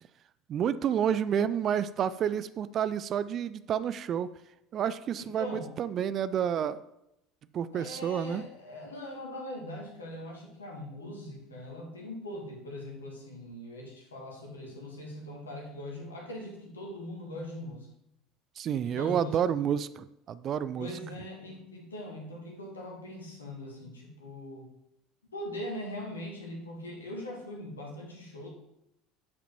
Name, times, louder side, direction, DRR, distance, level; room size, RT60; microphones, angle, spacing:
voice 1, 0.5-4.3 4.7-6.8 7.5-8.4 18.6-20.9, right 8 dB, 40° right, 14 dB, 0.3 m, -29 dB
voice 2, 5.4-5.7 7.7-17.9 18.8-19.5 20.8-24.7 25.3-28.5, left 1 dB, 80° left, 0 dB, 1.7 m, -41 dB
9.5 x 5.1 x 4.4 m, 0.83 s
figure-of-eight pair, 65°, 0 cm